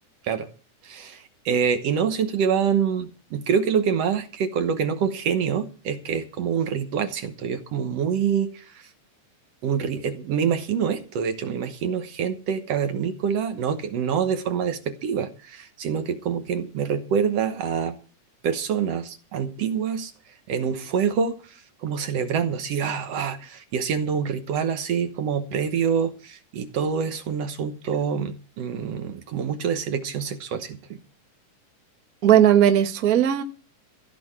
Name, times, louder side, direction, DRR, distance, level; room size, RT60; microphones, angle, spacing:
voice 1, 0.8-8.9 9.6-18.0 18.4-20.1 20.5-31.0, right 7 dB, 60° right, 1.9 m, -26 dB
voice 2, 32.2-33.4, right 10 dB, 75° right, 0.8 m, -17 dB
15.0 x 6.1 x 8.8 m
omnidirectional pair, 3.7 m